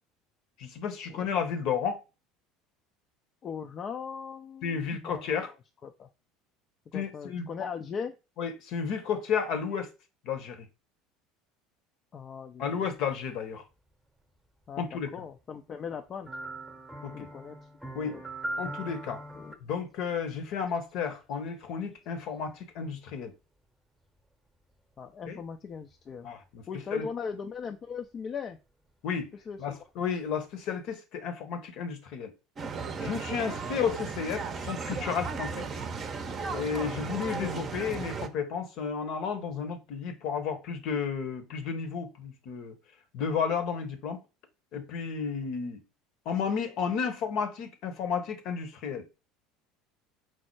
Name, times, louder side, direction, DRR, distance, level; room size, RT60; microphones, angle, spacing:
voice 1, 0.6-2.0 4.6-5.5 6.9-7.5 8.4-9.9 10.2-10.7 12.6-13.6 14.8-15.1 17.0-17.3 17.9-18.2 18.6-19.2 19.6-23.3 25.3-25.4 26.2-26.6 26.9-27.1 29.0-29.3 29.6-32.3 33.0-35.7 36.5-42.7 43.1-44.2 44.7-45.8 46.2-49.0, left 6 dB, 55° left, 0.9 m, -32 dB
voice 2, 3.4-5.6 5.8-6.1 6.9-8.1 12.1-12.8 14.7-16.3 17.1-17.6 18.1-18.2 19.3-19.6 25.0-26.3 26.7-28.6 29.5-29.8 33.4-33.8, left 6 dB, 40° left, 0.4 m, -39 dB
sound 1, 16.3-19.6 22.4-22.5, right 1 dB, 10° right, 0.9 m, -39 dB
sound 2, 32.6-38.3, right 5 dB, 35° right, 0.6 m, -35 dB
4.5 x 2.0 x 4.5 m
hypercardioid pair, 70°, 0 cm